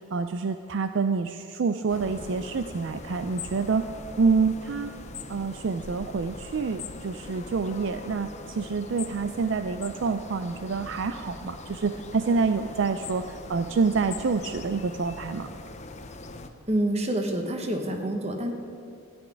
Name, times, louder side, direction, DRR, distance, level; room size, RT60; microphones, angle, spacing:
voice 1, 0.0-3.8 4.2-4.9 5.3-15.5, right 4 dB, 60° right, 9 dB, 0.4 m, -27 dB
sound 1, 1.9-16.5, left 3 dB, 30° left, 0.7 m, -41 dB
voice 2, 16.7-18.5, right 1 dB, 30° right, 4 dB, 1.2 m, -27 dB
14.0 x 6.2 x 10.0 m, 2.5 s
head